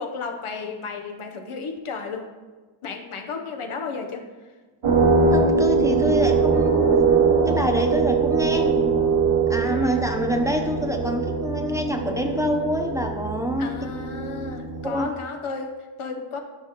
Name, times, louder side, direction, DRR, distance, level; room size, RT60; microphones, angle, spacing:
voice 1, 0.0-2.3 2.8-4.3 9.6-10.0 13.6-16.4, left 4 dB, 85° left, 4 dB, 0.9 m, -33 dB
sound 1, 4.8-15.0, right 4 dB, 80° right, 1.2 m, -22 dB
voice 2, 5.3-8.7 9.5-13.7 14.8-15.1, equal, 5° right, 3 dB, 0.7 m, -26 dB
12.0 x 4.9 x 3.0 m, 1.3 s
wide cardioid pair, 90°, 48 cm